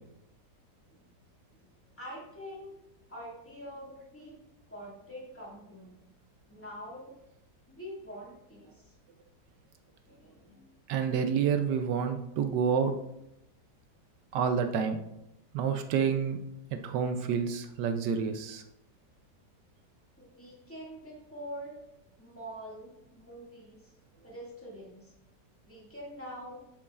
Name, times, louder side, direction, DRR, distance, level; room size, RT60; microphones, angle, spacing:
voice 1, 2.0-2.7 3.1-6.1 6.5-7.2 7.7-9.0 10.1-10.8 20.2-21.8 22.2-23.9 24.2-25.1 25.7-26.6, equal, 10° left, -4 dB, 2.0 m, -45 dB
voice 2, 10.9-12.9 14.3-15.0 15.5-16.4 16.7-18.6, right 7 dB, 80° right, 7 dB, 1.2 m, -28 dB
9.5 x 7.0 x 2.4 m, 0.83 s
omnidirectional pair, 1.9 m